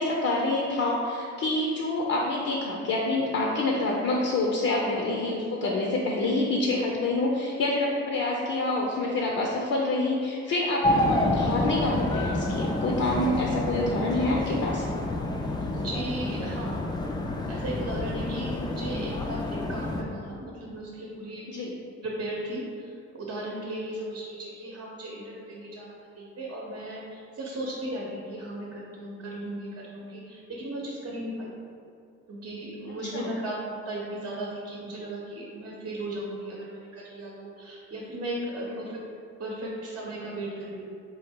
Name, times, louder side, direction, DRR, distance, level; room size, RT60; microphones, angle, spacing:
voice 1, 0.0-14.9 21.5-21.7 33.1-33.3 38.7-38.8, left 2 dB, 55° left, -2 dB, 0.6 m, -27 dB
sound 1, 10.8-20.0, left 1 dB, 15° left, 0.3 m, -28 dB
voice 2, 15.7-16.8 17.5-21.4 22.0-31.5 32.3-39.0 39.4-40.9, right 1 dB, 50° right, -3 dB, 0.8 m, -36 dB
3.9 x 2.3 x 4.4 m, 2.4 s
cardioid pair, 90°, 30 cm